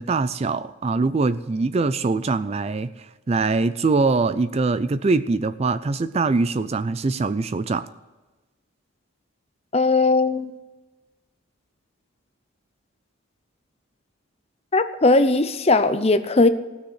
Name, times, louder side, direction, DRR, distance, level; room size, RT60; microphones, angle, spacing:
voice 1, 0.0-7.9, right 3 dB, 30° right, 14 dB, 0.3 m, -23 dB
voice 2, 9.7-10.5 14.7-16.5, left 3 dB, 30° left, 10 dB, 0.6 m, -18 dB
16.0 x 6.4 x 8.1 m, 1.2 s
head